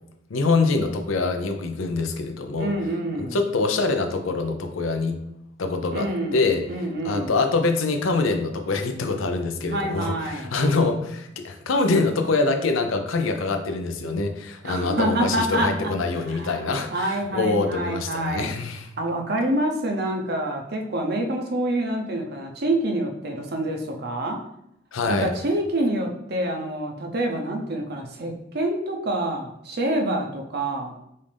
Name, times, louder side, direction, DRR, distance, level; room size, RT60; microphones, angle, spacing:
voice 1, 0.3-2.8 3.2-5.2 5.6-6.6 7.0-18.9 24.9-25.3, left 3 dB, 90° left, 6 dB, 0.6 m, -24 dB
voice 2, 2.6-3.4 5.9-6.4 6.7-7.3 9.7-10.5 14.6-15.9 16.3-16.6 16.9-18.5 19.0-24.4 25.1-30.9, right 1 dB, 55° right, 2 dB, 0.7 m, -27 dB
5.5 x 2.6 x 3.4 m, 0.78 s
head